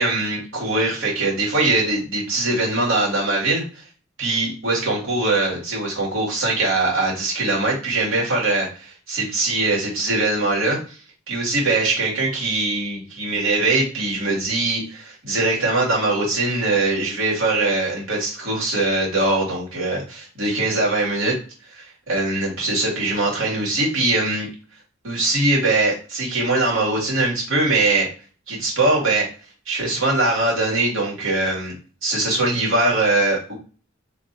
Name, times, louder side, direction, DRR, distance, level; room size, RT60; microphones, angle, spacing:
voice 1, 0.0-3.6 4.2-11.0 11.3-21.4 21.7-24.5 25.0-28.1 28.5-29.3 29.7-31.7 32.0-33.5, right 2 dB, 70° right, -4 dB, 2.1 m, -22 dB
3.2 x 2.6 x 4.2 m, 0.38 s
head